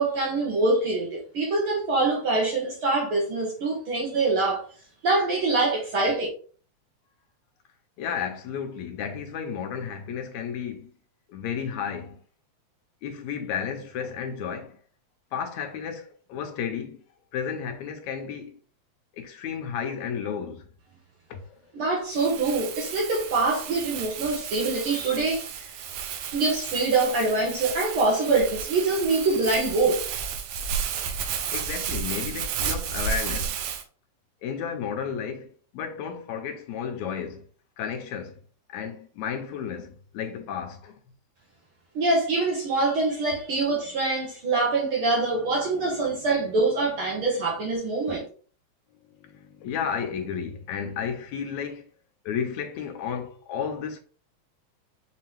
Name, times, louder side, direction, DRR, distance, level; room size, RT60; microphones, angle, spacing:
voice 1, 0.0-4.6 5.0-6.3 21.7-25.8 26.3-30.0 41.9-48.3, right 3 dB, 60° right, 1.6 m, -24 dB
voice 2, 8.0-10.9 11.3-12.2 13.0-14.8 15.3-17.0 17.3-18.6 19.1-20.7 21.3-21.6 31.5-33.6 34.4-37.5 37.8-38.4 38.7-41.0 45.6-45.9 47.1-47.2 49.2-51.8 52.3-54.0, left 7 dB, 80° left, 1.9 m, -33 dB
Crumpling crinkling, 22.1-33.8, right 7 dB, 80° right, 1.7 m, -32 dB
5.5 x 2.8 x 3.1 m
omnidirectional pair, 3.4 m